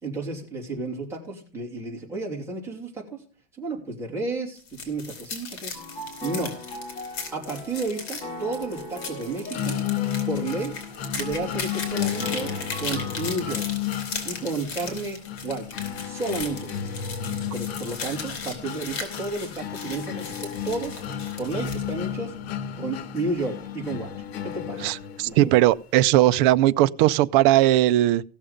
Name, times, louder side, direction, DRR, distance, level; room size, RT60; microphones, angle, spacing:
voice 1, 0.0-3.2 3.6-5.8 6.2-6.6 7.3-9.8 10.3-10.8 11.1-12.5 12.8-13.6 14.2-15.8 16.0-16.9 17.5-21.0 21.4-22.3 22.8-24.1 24.4-24.9 25.2-25.5, right 3 dB, 10° right, 3.1 m, -32 dB
sound 1, 4.6-21.9, left 4 dB, 50° left, 4.3 m, -37 dB
sound 2, 5.7-13.7, left 1 dB, 30° left, 4.1 m, -39 dB
sound 3, 9.5-25.5, left 9 dB, 75° left, 1.4 m, -33 dB
voice 2, 24.8-28.2, right 15 dB, 55° right, 0.6 m, -19 dB
16.0 x 7.2 x 5.1 m
supercardioid pair, 165°, 31 cm